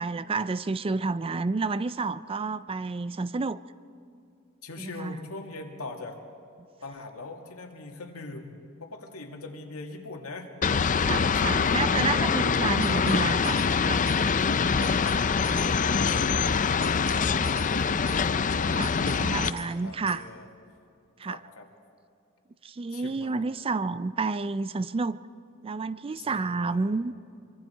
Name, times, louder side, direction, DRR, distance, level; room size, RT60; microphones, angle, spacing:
voice 1, 0.0-3.6 4.8-5.2 11.0-14.0 18.7-18.9 19.2-20.2 21.2-21.4 22.6-25.2 25.6-27.1, right 4 dB, 25° right, 15 dB, 0.4 m, -30 dB
voice 2, 4.6-6.2 6.8-8.5 8.8-10.5 11.4-11.8 14.1-20.5 21.2-21.7 22.9-23.4 26.1-27.0, left 2 dB, 85° left, 2 dB, 2.4 m, -42 dB
sound 1, 10.6-19.5, left 5 dB, 35° left, 0.5 m, -24 dB
sound 2, 12.8-13.2 13.4-13.7 14.1-14.2 14.6-15.2 15.4-15.7 16.1-16.2 16.6-17.2 17.4-17.7 18.1-18.2 18.6-19.2 19.4-19.7 20.1-20.2, right 5 dB, 65° right, 2.6 m, -44 dB
24.5 x 24.5 x 4.6 m, 2.5 s
head